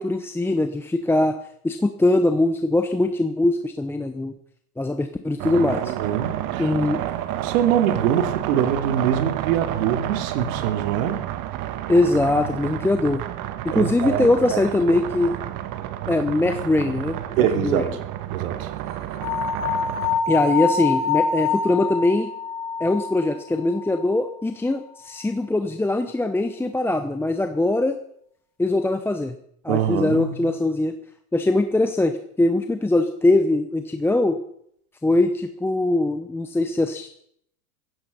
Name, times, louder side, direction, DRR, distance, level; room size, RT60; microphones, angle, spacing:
voice 1, 0.0-1.4 1.6-4.3 4.8-5.9 6.6-7.0 11.9-13.2 13.6-15.4 16.1-17.9 20.3-22.3 22.8-28.0 28.6-29.3 29.6-30.9 31.3-34.4 35.0-37.1, left 2 dB, 5° left, 7 dB, 0.8 m, -22 dB
sound 1, 5.4-20.2, right 13 dB, 45° right, 1.6 m, -30 dB
voice 2, 5.8-6.7 7.4-11.2 13.7-14.6 17.4-18.0 18.3-18.7 29.7-30.4, right 9 dB, 65° right, 7 dB, 2.8 m, -24 dB
sound 2, 19.2-24.3, left 6 dB, 65° left, 2.4 m, -26 dB
16.0 x 16.0 x 5.5 m, 0.69 s
supercardioid pair, 120°, 45 cm